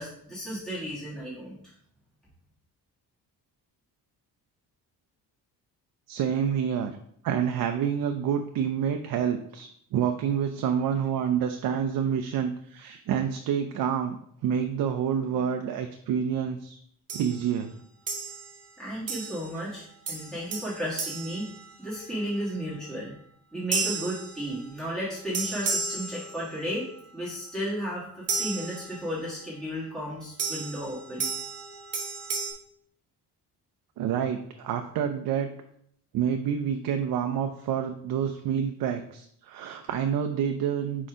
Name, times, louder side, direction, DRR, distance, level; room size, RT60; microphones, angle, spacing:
voice 1, 0.0-1.6 18.8-21.5 21.8-23.1 23.5-26.9 27.1-28.0 28.4-31.2, equal, ahead, -8 dB, 1.6 m, -33 dB
voice 2, 6.1-6.9 7.2-14.2 14.4-16.8 17.1-17.7 34.0-35.5 36.1-41.1, right 8 dB, 60° right, 6 dB, 0.6 m, -28 dB
sound 1, 17.1-17.5 18.1-18.7 19.1-19.6 20.1-22.2 23.7-24.9 25.3-26.8 28.3-29.3 30.4-32.5, right 4 dB, 40° right, 1.0 m, -34 dB
4.7 x 4.3 x 4.9 m, 0.67 s
cardioid pair, 170°, 38 cm